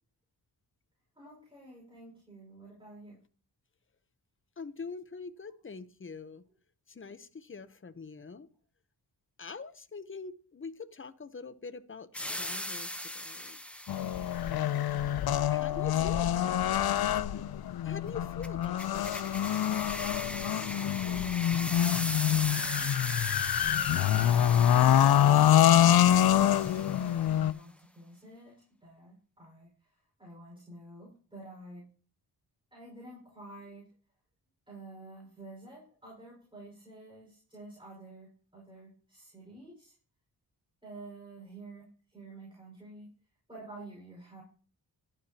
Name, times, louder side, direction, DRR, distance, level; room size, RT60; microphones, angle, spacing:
voice 1, 1.2-3.2 15.9-16.2 21.0-23.1 23.6-25.0 25.8-31.9 32.7-33.9 34.7-39.9 40.8-43.1 43.5-44.4, right 2 dB, 10° right, -2 dB, 5.1 m, -50 dB
voice 2, 4.6-6.5 6.9-8.5 9.4-13.6 15.5-16.5 17.1-17.5 17.8-19.5, left 5 dB, 30° left, 12 dB, 0.8 m, -44 dB
sound 1, 12.1-14.5 18.4-27.4, left 1 dB, 5° left, 0.9 m, -39 dB
sound 2, 13.9-27.5, left 11 dB, 65° left, 0.5 m, -25 dB
12.0 x 11.5 x 2.9 m, 0.40 s
wide cardioid pair, 85°, 41 cm